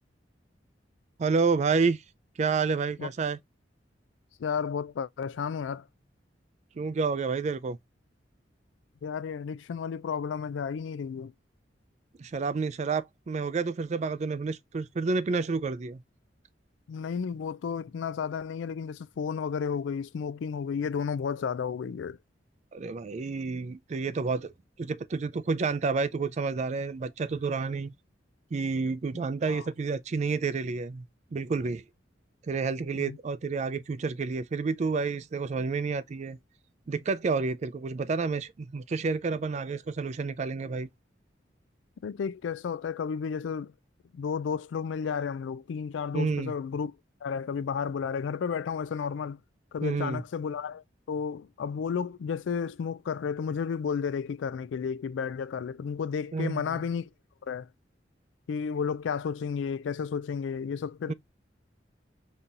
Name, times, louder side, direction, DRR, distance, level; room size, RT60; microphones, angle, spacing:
voice 1, 1.2-2.0 2.4-3.4 6.8-7.8 12.2-16.0 22.7-24.5 24.8-27.9 28.5-31.1 31.3-31.8 32.5-36.4 36.9-40.9 46.1-46.5 49.8-50.2 56.3-56.8 61.1-61.2, right 4 dB, 40° right, 0.3 m, -29 dB
voice 2, 4.4-5.8 9.0-11.3 16.9-22.2 29.5-29.6 32.9-33.2 42.0-43.7 44.1-46.9 47.2-49.4 49.7-57.1 57.4-57.7 58.5-61.1, left 6 dB, 85° left, 0.3 m, -32 dB
5.4 x 2.8 x 2.4 m
head